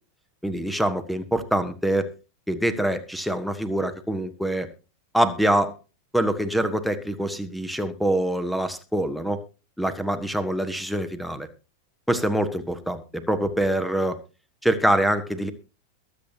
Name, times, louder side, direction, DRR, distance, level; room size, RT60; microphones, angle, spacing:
voice 1, 0.4-2.1 2.5-4.7 5.1-5.8 6.1-9.4 9.8-11.5 12.1-14.2 14.6-15.5, right 1 dB, ahead, 12 dB, 1.4 m, -25 dB
22.5 x 8.0 x 2.8 m, 0.32 s
figure-of-eight pair, 90°, 0 cm